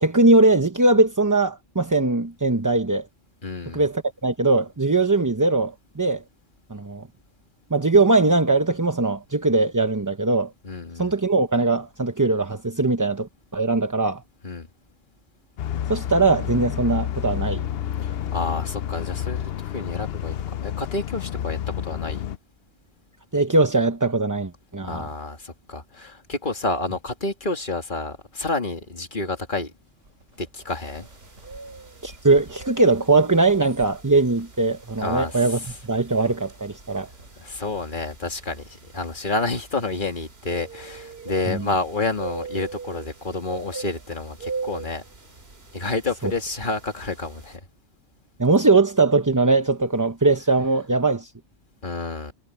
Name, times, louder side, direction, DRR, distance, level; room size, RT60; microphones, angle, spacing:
voice 1, 0.0-3.1 3.7-6.2 6.7-7.1 7.7-10.5 10.9-14.2 15.9-17.6 23.3-25.1 32.0-35.6 35.9-37.1 41.5-41.7 46.2-46.3 48.4-51.3, right 3 dB, 15° right, 0.8 m, -20 dB
voice 2, 3.4-3.8 10.6-11.1 14.4-14.7 18.0-21.6 21.8-22.2 24.8-29.7 30.4-31.1 35.0-35.5 37.4-45.0 45.7-47.6 51.8-52.3, left 3 dB, 40° left, 2.3 m, -29 dB
sound 1, 15.6-22.4, left 10 dB, 60° left, 0.8 m, -29 dB
sound 2, 29.6-39.1 39.3-39.5 40.1-40.6 41.1-42.2, right 1 dB, 80° right, 7.2 m, -53 dB
sound 3, 30.7-47.6, right 4 dB, 55° right, 2.7 m, -41 dB
omnidirectional pair, 1.3 m